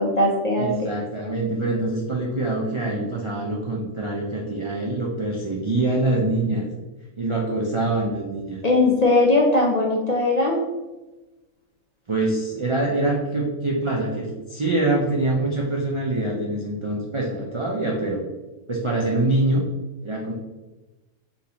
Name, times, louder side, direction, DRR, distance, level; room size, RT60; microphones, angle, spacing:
voice 1, 0.0-0.9 8.6-10.6, left 2 dB, 55° left, -2 dB, 0.4 m, -19 dB
voice 2, 0.6-6.7 7.2-8.6 12.1-18.2 18.7-19.6 20.0-20.3, right 2 dB, 50° right, -3 dB, 0.3 m, -24 dB
4.1 x 3.6 x 2.9 m, 1.1 s
omnidirectional pair, 1.4 m